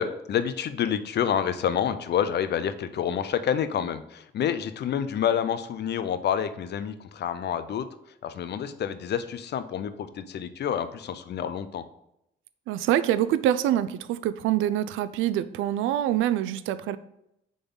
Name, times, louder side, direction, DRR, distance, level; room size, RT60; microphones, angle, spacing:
voice 1, 0.0-7.9 8.2-11.8, left 8 dB, 60° left, 12 dB, 0.6 m, -28 dB
voice 2, 12.7-17.0, right 12 dB, 90° right, 14 dB, 0.4 m, -25 dB
6.9 x 3.9 x 3.9 m, 0.80 s
cardioid pair, 90°, 20 cm